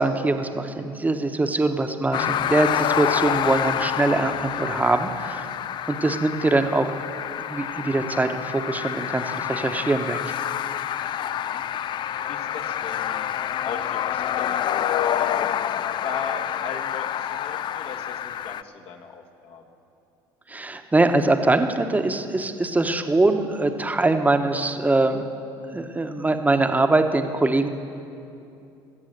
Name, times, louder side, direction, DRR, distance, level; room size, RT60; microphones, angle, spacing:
voice 1, 0.0-5.5 5.9-6.9 7.5-10.2 20.5-25.3 25.7-27.7, right 2 dB, 15° right, 7 dB, 1.1 m, -22 dB
sound 1, 2.1-18.6, left 10 dB, 40° left, 0.4 m, -28 dB
voice 2, 11.3-11.6 12.3-13.3 13.6-15.6 16.0-19.6, left 5 dB, 55° left, 2 dB, 1.6 m, -37 dB
22.0 x 7.5 x 6.7 m, 2.7 s
hypercardioid pair, 70°, 11 cm